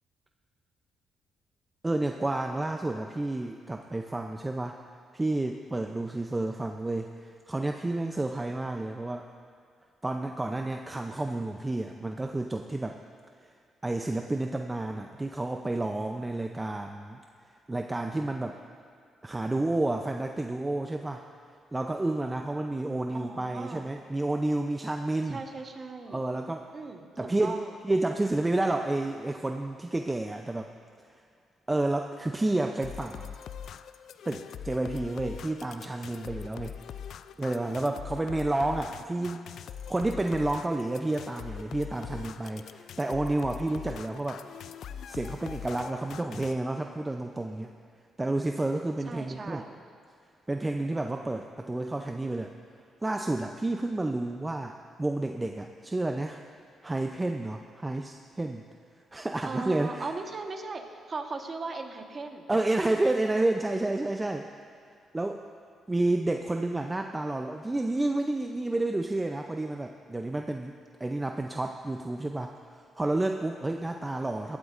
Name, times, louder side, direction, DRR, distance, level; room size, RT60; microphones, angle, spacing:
voice 1, 1.8-4.8 5.1-9.3 10.0-13.0 13.8-17.2 17.7-18.6 19.2-21.2 21.7-25.4 26.1-26.7 27.2-30.7 31.7-33.3 34.2-36.8 37.4-39.5 39.9-44.4 45.1-47.7 48.2-49.6 50.5-52.5 53.0-56.4 56.8-58.7 59.1-60.1 62.5-64.5 65.1-65.4 65.9-74.6, right 2 dB, 15° right, 4 dB, 0.5 m, -30 dB
voice 2, 23.1-23.9 25.3-26.2 26.7-27.1 27.4-27.7 49.0-49.8 59.4-60.8 61.1-62.5, right 3 dB, 40° right, 4 dB, 1.2 m, -38 dB
sound 1, 32.8-46.5, left 8 dB, 70° left, 0.3 m, -42 dB
22.0 x 12.0 x 2.5 m, 2.2 s
cardioid pair, 95°, 0 cm